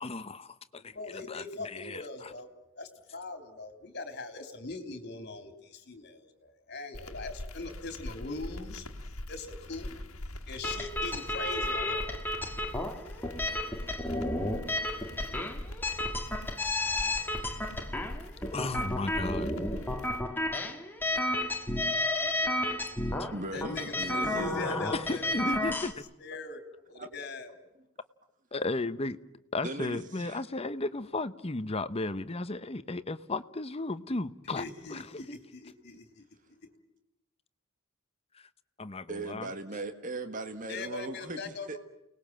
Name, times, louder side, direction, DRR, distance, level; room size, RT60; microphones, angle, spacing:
voice 1, 0.0-2.3 18.5-19.5 23.2-23.3 24.6-26.0 28.5-29.2 29.5-35.4 38.3-38.5 38.8-39.5, left 2 dB, 30° left, 12 dB, 0.9 m, -35 dB
voice 2, 0.9-2.5 2.8-8.9 9.3-9.9 10.5-12.2 23.5-25.8 26.2-26.6 26.9-27.5 34.6-36.2 40.7-41.8, left 3 dB, 50° left, 7 dB, 3.2 m, -41 dB
sound 1, 6.9-20.2, left 1 dB, 75° left, 1.8 m, -42 dB
sound 2, 10.6-25.9, left 1 dB, 10° left, 1.9 m, -32 dB
voice 3, 23.3-24.6 26.9-27.1 29.6-30.4 39.1-41.8, right 2 dB, 40° right, 8 dB, 1.6 m, -38 dB
30.0 x 20.0 x 7.6 m, 0.91 s
head